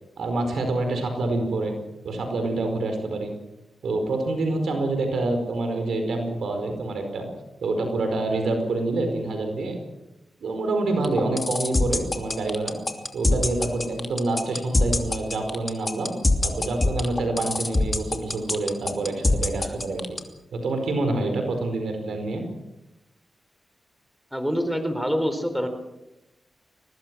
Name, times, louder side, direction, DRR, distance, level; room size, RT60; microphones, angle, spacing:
voice 1, 0.2-1.7 2.0-3.3 3.8-7.3 7.6-9.8 10.4-12.8 13.1-16.1 16.4-20.2 20.5-22.4, right 2 dB, 85° right, 5 dB, 4.8 m, -27 dB
sound 1, 11.0-20.2, left 2 dB, 25° left, 2.8 m, -23 dB
voice 2, 24.3-25.7, equal, ahead, 8 dB, 4.1 m, -25 dB
23.0 x 19.0 x 6.3 m, 0.96 s
cardioid pair, 65°, 0 cm